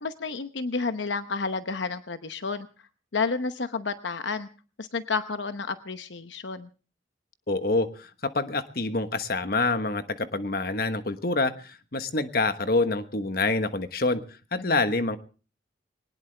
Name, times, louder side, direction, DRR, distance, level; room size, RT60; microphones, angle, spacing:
voice 1, 0.0-2.7 3.1-4.5 4.8-6.7 14.6-14.7, left 4 dB, 80° left, 10 dB, 0.9 m, -30 dB
voice 2, 7.5-14.2 14.5-15.2, left 3 dB, 55° left, 9 dB, 1.2 m, -26 dB
21.0 x 19.0 x 3.3 m, 0.37 s
head